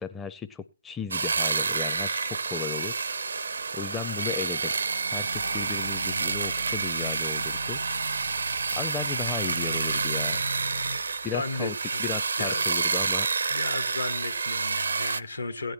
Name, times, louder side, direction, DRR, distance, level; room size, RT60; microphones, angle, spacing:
voice 1, 0.0-3.2 3.7-4.7 5.1-7.8 8.8-10.4 11.2-11.7 12.0-13.3, left 6 dB, 10° left, 0.5 m, -35 dB
sound 1, 1.1-15.2, right 4 dB, 65° right, 0.5 m, -29 dB
Race car auto racing / Alarm, 4.8-11.0, right 1 dB, 90° right, 1.0 m, -39 dB
sound 2, 5.3-11.4, left 19 dB, 40° left, 0.8 m, -56 dB
voice 2, 11.3-12.0 12.4-12.8 13.5-15.7, left 2 dB, 75° left, 1.3 m, -34 dB
16.5 x 9.0 x 4.4 m
figure-of-eight pair, 135°, 0 cm